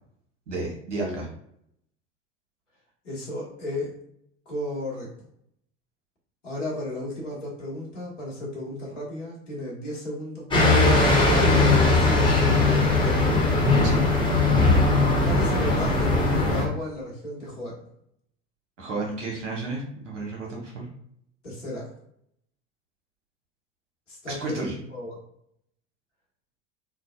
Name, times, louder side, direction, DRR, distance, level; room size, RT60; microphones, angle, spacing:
voice 1, 0.5-1.3 13.8-14.0 18.8-20.9 24.3-24.7, right 2 dB, 85° right, -1 dB, 1.0 m, -32 dB
voice 2, 3.0-3.9 4.4-5.1 6.4-13.4 13.7-13.8 15.2-17.8 21.4-21.9 24.1-25.2, left 1 dB, 90° left, -5 dB, 1.3 m, -34 dB
sound 1, 10.5-16.6, left 2 dB, 15° left, 0.9 m, -19 dB
3.7 x 2.0 x 2.2 m, 0.72 s
hypercardioid pair, 75°, 36 cm